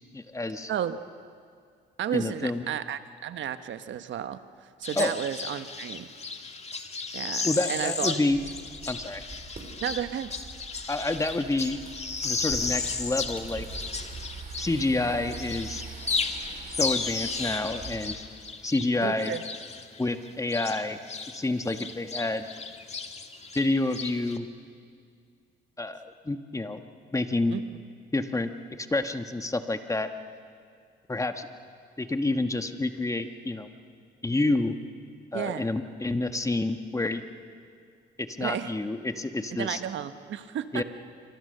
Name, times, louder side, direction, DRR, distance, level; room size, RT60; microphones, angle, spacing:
voice 1, 0.1-0.7 2.1-2.6 4.9-5.1 7.4-8.4 8.9-9.2 10.9-11.8 12.2-13.7 14.6-15.8 16.7-18.2 18.6-19.4 20.0-21.0 21.3-22.4 23.5-24.5 25.8-26.8 27.1-27.5 28.1-28.5 28.8-30.1 31.1-31.5 32.0-33.7 34.2-34.7 35.3-37.2 38.2-39.8 40.7-40.8, left 2 dB, 15° left, 8 dB, 1.6 m, -28 dB
voice 2, 2.0-6.1 7.1-8.2 9.8-10.3 19.0-19.4 27.5-27.6 35.3-35.7 38.4-38.7 39.6-40.8, right 10 dB, 70° right, 11 dB, 1.3 m, -33 dB
sound 1, 4.8-15.0 15.3-21.4 21.6-24.4, left 4 dB, 35° left, 1.9 m, -34 dB
sound 2, 8.3-18.1, right 4 dB, 40° right, 5.6 m, -43 dB
27.5 x 25.0 x 6.8 m, 2.2 s
cardioid pair, 90°, 20 cm